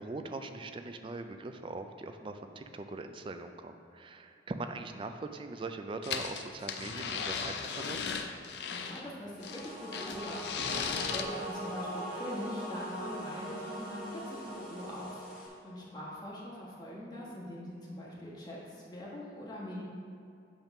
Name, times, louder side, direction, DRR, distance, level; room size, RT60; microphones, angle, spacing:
voice 1, 0.0-8.0, right 3 dB, 30° right, 7 dB, 0.3 m, -41 dB
sound 1, 6.0-9.0 9.4-11.2, left 6 dB, 70° left, 0.5 m, -36 dB
voice 2, 8.7-10.8 11.1-19.8, equal, 25° left, -6 dB, 1.5 m, -43 dB
sound 2, 9.4-15.5, equal, 55° left, 1.7 m, -41 dB
8.0 x 3.6 x 5.8 m, 2.5 s
head